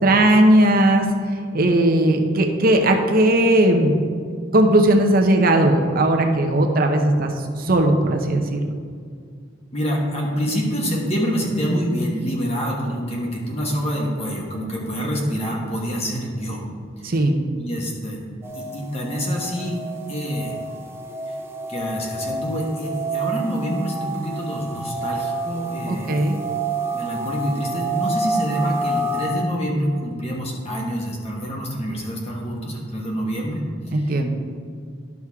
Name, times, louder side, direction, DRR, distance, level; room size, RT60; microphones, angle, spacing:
voice 1, 0.0-1.1 1.5-4.0 4.5-8.6 17.0-17.4 25.9-26.4 33.9-34.3, right 1 dB, 45° right, 3 dB, 0.8 m, -17 dB
voice 2, 9.7-16.6 17.0-17.1 17.6-18.2 18.5-19.8 20.1-20.6 21.3-21.4 21.7-26.3 26.9-33.6 33.9-34.1, equal, 30° left, -2 dB, 1.4 m, -26 dB
sound 1, 18.4-29.3, right 2 dB, 10° right, 0.6 m, -29 dB
11.0 x 6.2 x 3.6 m, 2.1 s
head